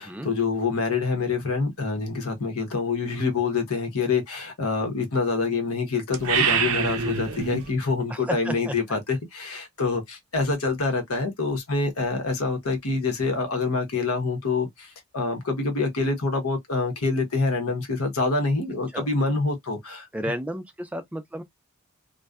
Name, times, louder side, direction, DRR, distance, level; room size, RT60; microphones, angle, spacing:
voice 1, 0.0-20.1, left 4 dB, 80° left, 0.9 m, -26 dB
sound 1, 6.1-7.7, right 7 dB, 80° right, 0.6 m, -25 dB
voice 2, 8.1-8.7 18.9-19.1 20.1-21.4, equal, 5° right, 0.3 m, -32 dB
2.5 x 2.2 x 2.2 m
head